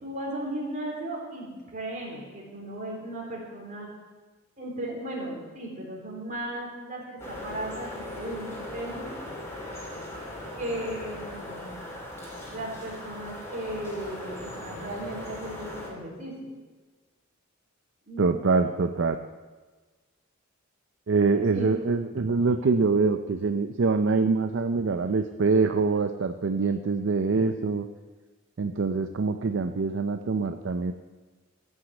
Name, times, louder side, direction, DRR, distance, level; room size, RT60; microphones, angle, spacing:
voice 1, 0.0-3.9 4.6-9.1 10.6-11.8 12.5-16.5 18.1-18.4 21.5-21.7, right 1 dB, 40° right, -3 dB, 3.7 m, -36 dB
sound 1, 7.2-15.9, left 1 dB, 15° left, 2.8 m, -39 dB
voice 2, 18.2-19.2 21.1-27.9 28.6-30.9, right 4 dB, 60° right, 8 dB, 0.5 m, -24 dB
15.0 x 6.3 x 8.1 m, 1.3 s
head